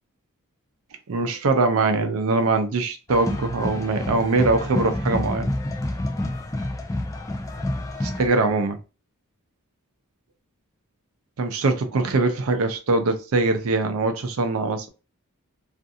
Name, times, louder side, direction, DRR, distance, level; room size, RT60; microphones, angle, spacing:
voice 1, 1.1-5.5 8.0-8.8 11.4-14.9, right 3 dB, 70° right, 0.5 m, -22 dB
sound 1, 3.1-8.3, left 1 dB, 15° left, 0.3 m, -28 dB
2.5 x 2.3 x 2.6 m
head